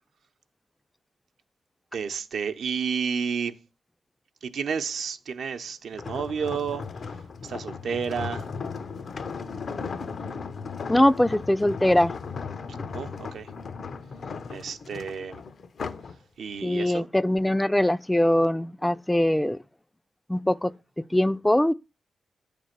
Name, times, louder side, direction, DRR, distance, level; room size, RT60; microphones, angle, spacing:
voice 1, 1.9-3.6 4.4-8.5 12.7-13.5 14.5-15.4 16.4-17.1, right 6 dB, 75° right, 0.7 m, -31 dB
sound 1, 5.9-16.1 16.6-16.9, left 5 dB, 65° left, 0.7 m, -36 dB
voice 2, 10.9-12.1 16.6-19.6 20.3-20.7 21.1-21.7, left 1 dB, 10° left, 0.4 m, -22 dB
8.8 x 3.4 x 6.5 m
supercardioid pair, 45°, 0 cm